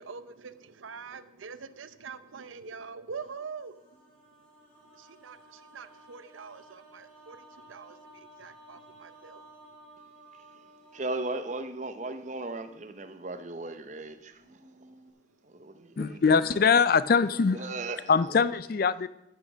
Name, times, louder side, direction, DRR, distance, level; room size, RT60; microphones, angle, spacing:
voice 1, 0.0-11.0 14.4-16.9 17.6-18.1, right 5 dB, 90° right, 0.7 m, -46 dB
sound 1, 3.2-12.8 14.0-14.1 14.3-15.1, right 1 dB, 5° left, 3.8 m, -55 dB
voice 2, 10.9-14.9 15.4-16.7 17.5-18.4, right 2 dB, 40° right, 0.8 m, -37 dB
voice 3, 16.0-17.6 18.1-19.1, left 5 dB, 50° left, 0.4 m, -22 dB
14.0 x 6.3 x 6.1 m
head